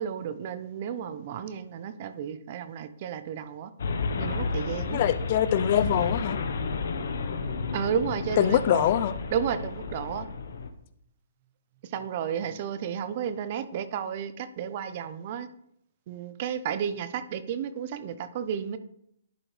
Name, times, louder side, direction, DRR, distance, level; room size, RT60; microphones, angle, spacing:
voice 1, 0.0-3.7 4.2-5.0 7.7-8.9 9.3-10.3 11.9-15.5 16.1-18.8, right 8 dB, 45° right, 0.6 m, -32 dB
sound 1, 3.8-10.7, left 4 dB, 70° left, 0.9 m, -32 dB
voice 2, 4.9-6.4 8.4-9.1, left 10 dB, 45° left, 0.4 m, -23 dB
11.0 x 5.0 x 3.2 m
hypercardioid pair, 145°, 0 cm